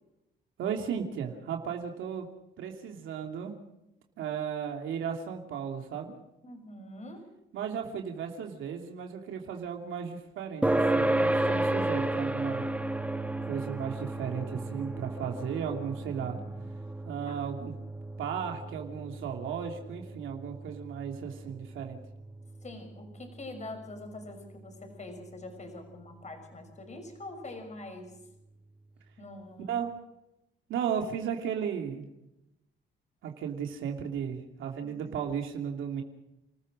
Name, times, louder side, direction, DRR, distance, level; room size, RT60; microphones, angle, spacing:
voice 1, 0.6-2.3 2.6-3.5 4.2-6.1 7.5-12.7 13.5-16.4 17.0-17.7 18.2-22.0 29.7-29.9 30.7-32.1 33.2-36.0, right 7 dB, 80° right, 3 dB, 2.7 m, -35 dB
voice 2, 6.4-7.3 16.2-16.7 17.2-17.4 22.6-28.2 29.2-29.7 34.8-35.1, left 2 dB, 35° left, 5 dB, 6.1 m, -44 dB
sound 1, 10.6-25.5, right 1 dB, 5° right, 1.5 m, -33 dB
30.0 x 14.5 x 6.4 m, 0.91 s
cardioid pair, 90°, 20 cm